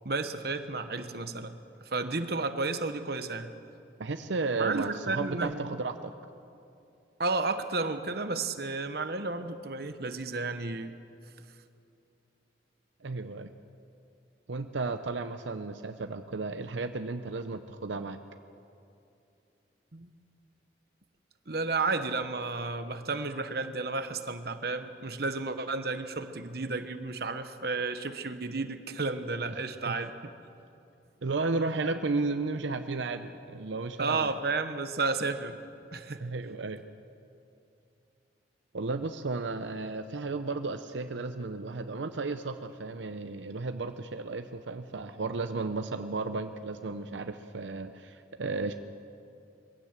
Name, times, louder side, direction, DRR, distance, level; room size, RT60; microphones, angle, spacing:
voice 1, 0.0-1.6 1.8-3.5 4.6-5.7 7.2-10.9 19.9-20.1 21.5-30.3 34.0-35.6 35.9-36.2, right 3 dB, 55° right, 9 dB, 1.1 m, -32 dB
voice 2, 4.0-6.1 13.0-13.5 14.5-18.2 29.5-29.6 29.9-30.0 31.2-34.3 36.2-36.8 38.7-48.7, right 3 dB, 80° right, 8 dB, 0.7 m, -33 dB
22.0 x 16.5 x 7.5 m, 2.6 s
head